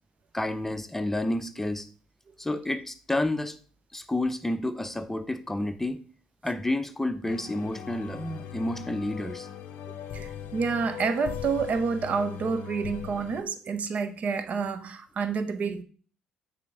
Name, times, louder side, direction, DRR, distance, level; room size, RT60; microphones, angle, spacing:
voice 1, 0.3-1.9 2.4-3.6 3.9-6.0 6.4-9.5, left 1 dB, 10° left, 0.6 m, -30 dB
sound 1, 7.2-13.4, left 9 dB, 55° left, 0.7 m, -39 dB
voice 2, 10.1-15.8, right 5 dB, 40° right, 0.6 m, -29 dB
8.6 x 3.5 x 3.7 m
figure-of-eight pair, 55°, 4 cm